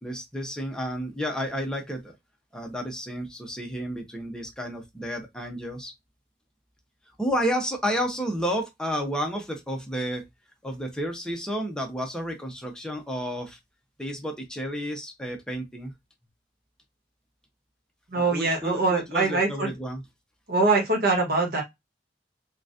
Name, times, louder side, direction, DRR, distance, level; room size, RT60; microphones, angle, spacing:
voice 1, 0.0-2.1 2.5-5.9 7.2-10.2 10.6-13.6 14.0-15.9 18.1-20.0, equal, 5° left, 0.7 m, -31 dB
voice 2, 18.1-19.7 20.5-21.6, right 3 dB, 55° right, 1.1 m, -23 dB
3.9 x 2.3 x 2.5 m
head